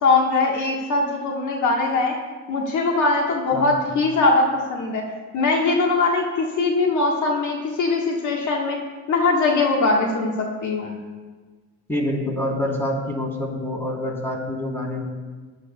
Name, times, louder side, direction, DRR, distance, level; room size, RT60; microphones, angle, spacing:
voice 1, 0.0-2.1 2.5-5.0 5.3-8.8 9.1-11.0, left 3 dB, 75° left, 0 dB, 1.6 m, -21 dB
voice 2, 3.5-3.9 11.9-15.0, left 1 dB, 10° left, -3 dB, 3.8 m, -26 dB
18.5 x 11.5 x 2.4 m, 1.4 s
cardioid pair, 90°, 30 cm